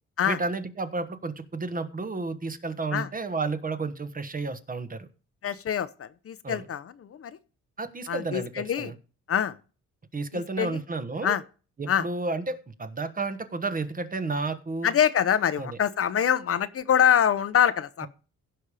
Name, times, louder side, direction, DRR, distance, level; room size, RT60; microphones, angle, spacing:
voice 1, 0.2-5.1 6.4-6.6 7.8-8.9 10.1-11.4 11.8-14.9 15.6-15.8 18.0-18.1, right 3 dB, 30° right, 1.3 m, -32 dB
voice 2, 5.4-7.4 8.1-8.9 9.3-9.6 10.3-10.8 11.2-11.4 11.9-12.0 14.8-18.1, left 9 dB, 50° left, 0.8 m, -25 dB
16.0 x 5.5 x 4.9 m
cardioid pair, 90°, 30 cm